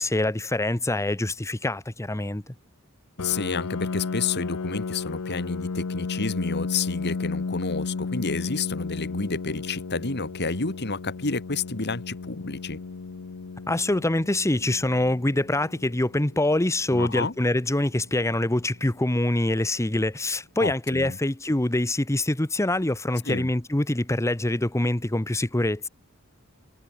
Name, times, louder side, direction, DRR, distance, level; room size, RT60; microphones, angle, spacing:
voice 1, 0.0-2.5 13.7-25.9, left 1 dB, 15° left, 1.0 m, -25 dB
Piano, 3.2-18.6, left 4 dB, 85° left, 0.7 m, -34 dB
voice 2, 3.2-12.8 16.9-17.3 20.6-21.2 23.3-23.5, left 4 dB, 50° left, 2.5 m, -30 dB
head